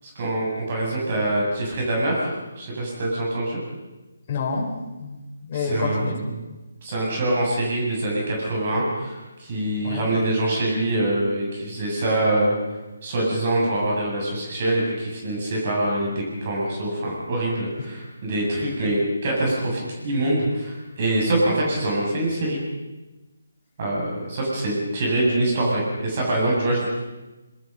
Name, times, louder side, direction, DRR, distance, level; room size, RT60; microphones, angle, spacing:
voice 1, 0.0-3.6 5.5-6.1 6.8-12.5 13.0-22.6 23.8-26.9, right 1 dB, 40° right, -3 dB, 7.9 m, -24 dB
voice 2, 4.3-6.5 9.8-10.1, left 4 dB, 35° left, -2 dB, 4.4 m, -29 dB
25.5 x 23.0 x 5.6 m, 1.1 s
figure-of-eight pair, 155°, 0 cm